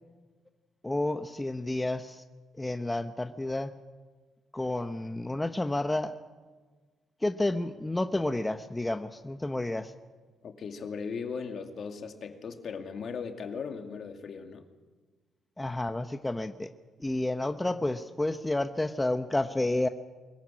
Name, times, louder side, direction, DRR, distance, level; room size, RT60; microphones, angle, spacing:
voice 1, 0.8-2.2 2.6-3.8 4.5-6.1 7.2-9.9 15.6-16.7 17.0-19.9, left 2 dB, 15° left, 8 dB, 0.9 m, -30 dB
voice 2, 10.4-14.7, left 5 dB, 55° left, 5 dB, 2.4 m, -38 dB
23.0 x 15.0 x 9.9 m, 1.4 s
cardioid pair, 90°, 0 cm